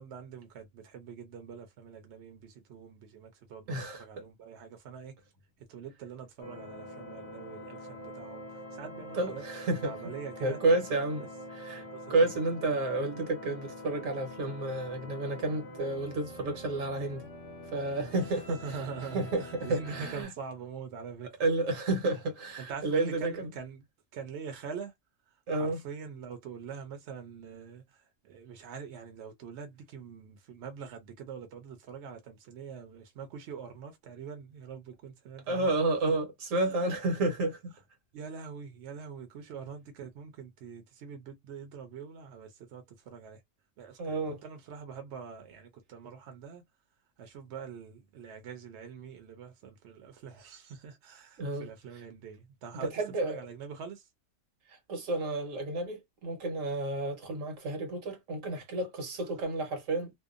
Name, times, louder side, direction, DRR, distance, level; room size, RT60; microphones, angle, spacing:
voice 1, 0.0-5.1 5.7-9.4 9.8-10.6 11.2-11.3 11.7-12.3 18.1-21.3 22.6-23.8 24.1-24.9 25.5-36.1 36.5-36.9 38.1-43.4 43.8-46.6 47.2-54.1, right 6 dB, 65° right, 0.8 m, -44 dB
voice 2, 3.7-4.0 9.1-9.9 10.4-11.2 11.5-11.8 12.1-17.3 17.7-18.4 19.1-20.3 21.4-23.5 25.5-25.8 35.5-37.7 44.0-44.4 51.4-51.7 52.9-53.4 54.9-60.1, right 2 dB, 80° right, 1.3 m, -30 dB
sound 1, 6.4-20.2, left 1 dB, 35° left, 0.6 m, -45 dB
2.7 x 2.1 x 2.4 m
omnidirectional pair, 1.3 m